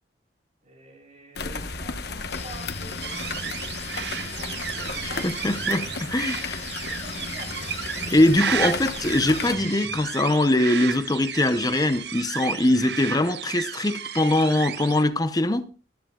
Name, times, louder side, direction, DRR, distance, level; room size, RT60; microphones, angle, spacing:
voice 1, 0.6-5.7 6.3-6.4 6.9-7.8 8.5-8.6, right 1 dB, 40° right, 4.1 m, -47 dB
sound 1, 1.4-9.6, left 4 dB, 60° left, 1.1 m, -34 dB
Guitar, 2.3-10.3, left 4 dB, 35° left, 1.1 m, -41 dB
sound 2, 3.0-15.0, right 8 dB, 65° right, 0.7 m, -33 dB
voice 2, 5.2-5.9 6.1-6.6 8.1-15.7, left 1 dB, 20° left, 0.7 m, -22 dB
15.0 x 13.0 x 2.4 m
head